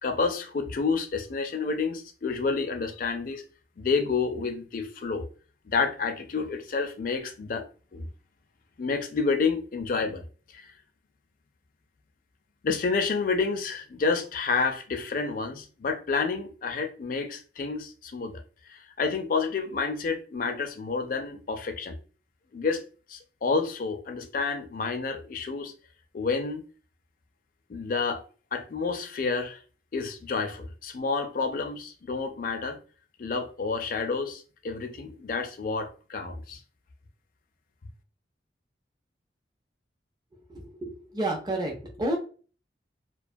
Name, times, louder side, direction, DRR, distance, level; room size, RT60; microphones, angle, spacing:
voice 1, 0.0-3.4 3.8-5.3 5.7-7.7 7.9-8.1 8.8-10.2 10.5-10.6 12.6-18.4 18.7-22.0 22.5-22.8 23.1-25.7 26.1-26.6 27.7-28.2 28.5-29.6 29.9-32.8 33.2-36.6, left 4 dB, 50° left, 0.4 m, -29 dB
voice 2, 40.5-42.2, right 1 dB, 25° right, 0.5 m, -30 dB
2.4 x 2.2 x 2.5 m
head